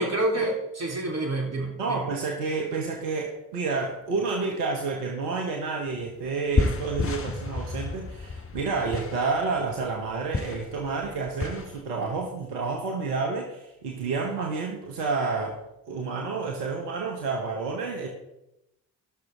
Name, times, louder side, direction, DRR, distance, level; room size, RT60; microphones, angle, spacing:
voice 1, 0.0-2.0, right 2 dB, 35° right, 0 dB, 3.7 m, -28 dB
voice 2, 1.8-15.6 15.9-18.1, right 4 dB, 80° right, 1 dB, 1.5 m, -29 dB
sound 1, 5.9-6.0 6.2-11.8, left 3 dB, 30° left, 1.5 m, -31 dB
19.0 x 6.5 x 3.7 m, 0.86 s
figure-of-eight pair, 45°, 47 cm